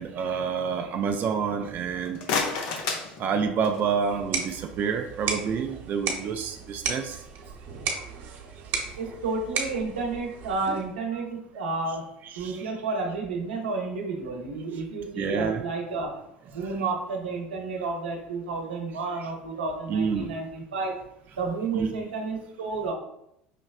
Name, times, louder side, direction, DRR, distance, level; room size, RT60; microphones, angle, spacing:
voice 1, 0.0-2.2 3.2-7.2 12.3-12.7 15.2-15.6 16.7-16.8 19.9-20.3 21.7-21.9, right 6 dB, 40° right, 4 dB, 0.4 m, -28 dB
sound 1, 1.9-4.0, left 5 dB, 60° left, 0.7 m, -31 dB
sound 2, 4.0-11.0, right 5 dB, 55° right, 1.1 m, -35 dB
voice 2, 9.0-12.0 12.3-16.1 16.5-21.0 21.4-22.9, right 3 dB, 80° right, 1 dB, 0.8 m, -31 dB
5.7 x 3.0 x 2.4 m, 0.79 s
hypercardioid pair, 70°, 5 cm